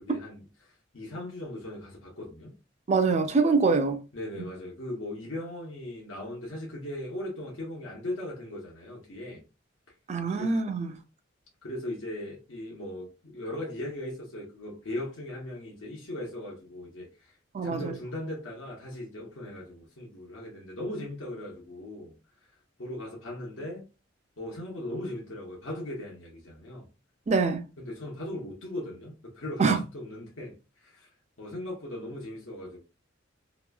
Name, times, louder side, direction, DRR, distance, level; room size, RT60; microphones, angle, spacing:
voice 1, 0.0-2.5 4.1-9.4 10.4-10.5 11.6-17.3 17.6-22.1 22.8-23.9 24.4-26.9 27.8-31.1 31.4-32.8, left 1 dB, 85° left, 0.9 m, -38 dB
voice 2, 2.9-4.0 10.1-11.0 17.5-18.0 27.3-27.6 29.6-29.8, right 4 dB, 35° right, 0.4 m, -24 dB
3.0 x 2.2 x 2.2 m
head